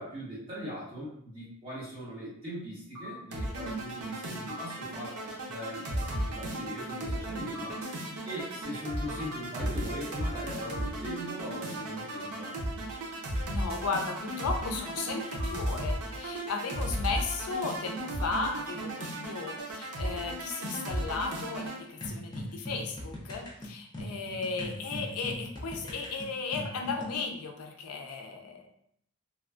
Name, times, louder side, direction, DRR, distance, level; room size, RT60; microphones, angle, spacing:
voice 1, 0.0-7.8 8.2-12.7, equal, 25° right, -9 dB, 1.3 m, -40 dB
sound 1, 2.9-3.1 4.5-4.6 6.0-6.2 7.5-7.7 9.1-9.2 10.6-10.8 12.1-12.3 13.9-14.0 15.4-15.5, left 1 dB, 55° left, 1.0 m, -43 dB
sound 2, 3.3-21.8, right 1 dB, 90° right, 0.6 m, -35 dB
voice 2, 13.5-28.7, left 4 dB, 85° left, 3 dB, 0.4 m, -35 dB
sound 3, 22.0-27.2, equal, 20° left, 0.4 m, -40 dB
3.0 x 2.2 x 2.4 m, 0.69 s
head